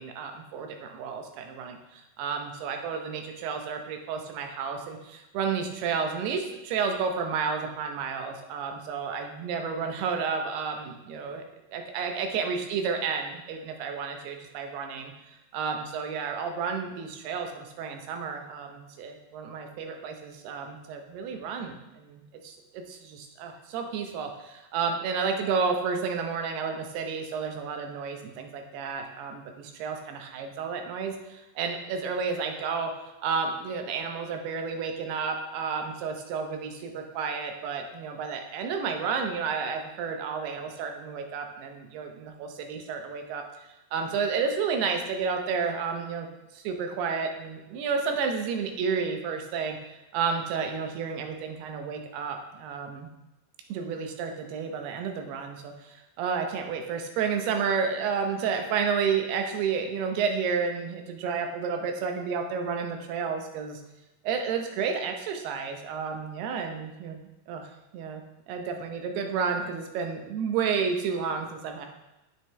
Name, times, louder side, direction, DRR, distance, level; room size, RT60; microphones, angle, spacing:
voice 1, 0.0-11.4 11.7-32.9 33.2-43.4 43.9-46.3 46.5-53.1 53.7-63.8 64.2-67.2 67.5-71.9, right 5 dB, 85° right, 4 dB, 2.9 m, -31 dB
9.4 x 7.2 x 3.3 m, 0.97 s
omnidirectional pair, 4.6 m